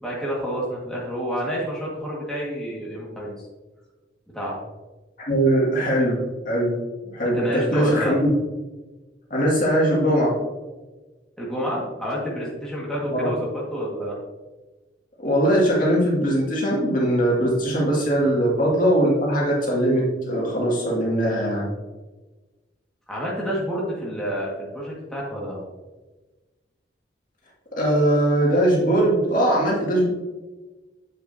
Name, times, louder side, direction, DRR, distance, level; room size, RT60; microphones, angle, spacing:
voice 1, 0.0-3.3 4.3-4.6 7.2-8.1 11.4-14.2 18.2-18.3 23.1-25.6, equal, 5° left, -6 dB, 1.6 m, -29 dB
voice 2, 5.3-6.8 7.1-8.3 9.3-10.4 13.1-13.3 15.2-21.7 27.8-30.1, right 1 dB, 50° left, -4 dB, 2.1 m, -21 dB
7.6 x 6.4 x 2.7 m, 1.2 s
head